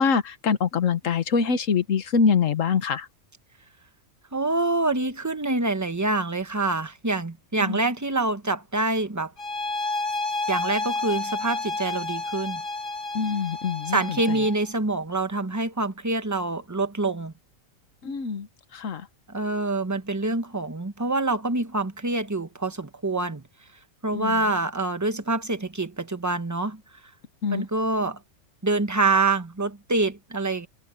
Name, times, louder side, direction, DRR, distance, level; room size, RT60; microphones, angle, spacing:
voice 1, 0.0-3.1 7.6-7.8 13.1-14.0 18.0-18.5 18.7-19.1 24.1-24.4 27.4-27.7, left 5 dB, 75° left, 1.5 m, -24 dB
voice 2, 4.3-9.3 10.5-12.6 13.9-17.3 19.3-23.4 24.0-26.8 27.5-28.2 28.6-30.7, right 2 dB, 15° right, 1.0 m, -26 dB
sound 1, 9.4-14.7, left 3 dB, 40° left, 2.3 m, -30 dB
omnidirectional pair, 1.4 m